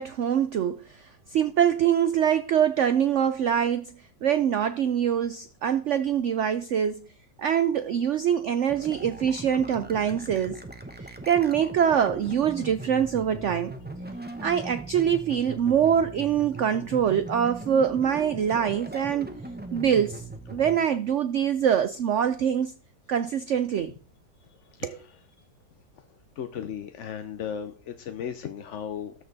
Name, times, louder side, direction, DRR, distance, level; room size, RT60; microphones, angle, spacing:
voice 1, 0.0-3.9 4.2-7.1 7.4-10.6 11.0-13.7 14.4-19.3 19.7-22.7 23.1-23.9 24.8-25.0, right 8 dB, 85° right, 0.6 m, -24 dB
sound 1, 8.7-20.8, right 2 dB, 10° right, 0.5 m, -40 dB
voice 2, 26.4-29.1, left 8 dB, 60° left, 0.8 m, -35 dB
13.0 x 6.6 x 4.0 m
omnidirectional pair, 1.9 m